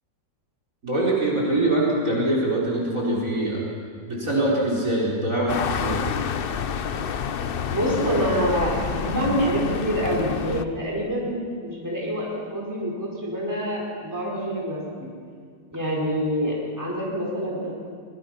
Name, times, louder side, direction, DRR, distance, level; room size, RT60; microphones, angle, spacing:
voice 1, 0.8-3.6 4.0-6.1, right 1 dB, 45° right, -4 dB, 4.8 m, -23 dB
sound 1, 5.5-10.7, left 7 dB, 70° left, 0.5 m, -28 dB
voice 2, 7.7-15.1 15.7-17.7, equal, 10° right, -4 dB, 5.0 m, -26 dB
24.0 x 22.5 x 5.9 m, 2.1 s
omnidirectional pair, 1.9 m